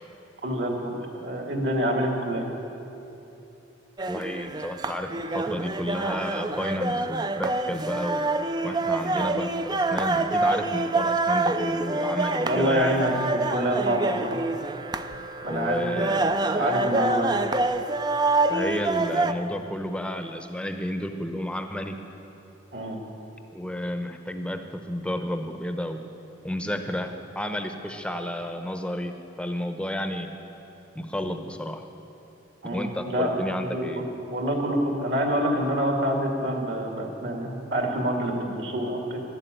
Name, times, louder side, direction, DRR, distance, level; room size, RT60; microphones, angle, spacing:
voice 1, 0.4-1.0 1.2-2.4 12.4-14.4 15.4-16.2 16.5-17.4 22.7-23.0 32.6-39.2, equal, 65° right, 2 dB, 2.2 m, -26 dB
sound 1, 4.0-19.3, right 2 dB, 20° right, 0.4 m, -26 dB
voice 2, 4.1-8.2 8.6-13.0 15.5-16.3 18.5-22.0 23.5-26.0 26.4-29.1 29.4-30.3 30.9-31.8 32.6-34.0, equal, 5° left, 6 dB, 0.8 m, -31 dB
12.0 x 12.0 x 9.1 m, 2.9 s
head